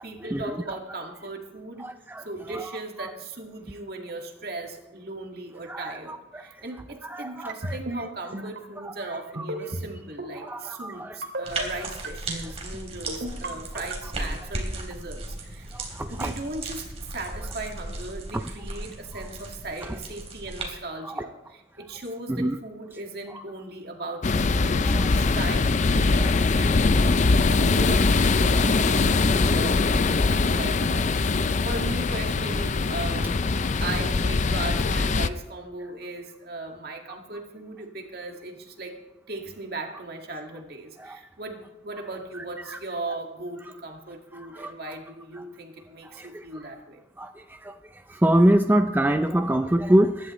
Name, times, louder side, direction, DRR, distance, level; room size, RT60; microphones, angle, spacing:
voice 1, 0.0-1.9 2.2-15.7 16.1-33.4 33.8-38.9 39.3-47.0, right 2 dB, 60° right, 2 dB, 2.0 m, -38 dB
voice 2, 1.8-2.2 2.5-2.6 3.0-3.1 5.7-6.4 7.1-7.7 8.8-8.9 10.4-11.1 15.7-16.3 21.1-21.2 22.3-22.5 23.3-23.4 24.9-25.1 26.2-26.3 41.0-41.2 42.7-42.8 44.4-44.7 46.2-46.3 47.2-47.3 47.6-47.7 48.1-50.3, right 1 dB, 10° right, 7 dB, 0.5 m, -24 dB
sound 1, 7.5-8.0 8.3-8.6 9.4-9.9 10.2-10.5 11.2-11.6 12.0-12.4 13.1-13.5 13.9-14.2, right 1 dB, 75° right, 2.5 m, -32 dB
sound 2, 11.4-20.6, right 2 dB, 35° right, 3.1 m, -36 dB
sound 3, 24.2-35.3, left 3 dB, 40° left, 0.5 m, -22 dB
23.5 x 11.5 x 3.2 m, 0.99 s
head